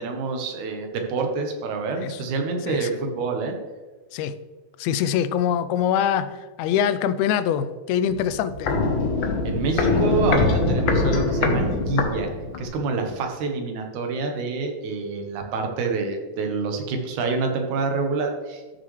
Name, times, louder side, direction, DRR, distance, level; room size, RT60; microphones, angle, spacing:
voice 1, 0.0-3.6 9.4-12.3 12.6-18.8, right 4 dB, 85° right, 3 dB, 2.6 m, -27 dB
voice 2, 4.8-8.8, left 9 dB, 80° left, 13 dB, 1.7 m, -24 dB
Walk footsteps, 8.1-12.8 13.1-13.2, left 3 dB, 60° left, 1.3 m, -23 dB
13.5 x 6.4 x 3.2 m, 1.3 s
omnidirectional pair, 3.3 m